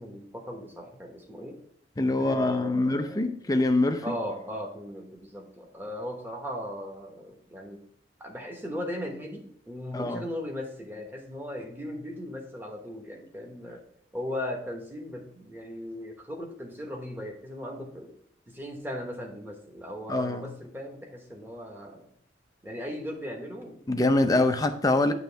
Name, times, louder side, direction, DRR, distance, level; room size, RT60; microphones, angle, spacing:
voice 1, 0.0-1.6 2.2-3.3 4.0-7.8 8.2-13.8 14.1-18.1 18.5-22.1 22.6-24.3, left 1 dB, 10° right, 1.1 m, -38 dB
voice 2, 2.0-4.2 9.9-10.3 20.1-20.5 23.9-25.1, left 2 dB, 20° left, 0.5 m, -24 dB
9.1 x 3.1 x 4.5 m
head